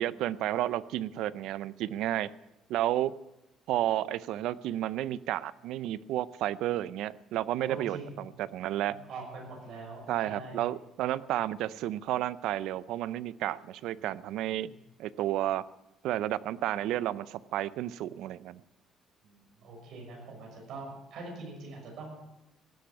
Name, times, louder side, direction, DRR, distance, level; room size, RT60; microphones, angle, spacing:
voice 1, 0.0-2.3 2.7-3.1 3.7-9.0 10.1-14.7 15.0-15.6 16.0-18.6, right 13 dB, 70° right, 18 dB, 0.5 m, -31 dB
voice 2, 7.6-8.1 8.9-10.7 13.9-14.2 19.2-22.1, right 3 dB, 55° right, 0 dB, 6.2 m, -44 dB
16.5 x 8.3 x 9.1 m, 0.94 s
cardioid pair, 180°, 0 cm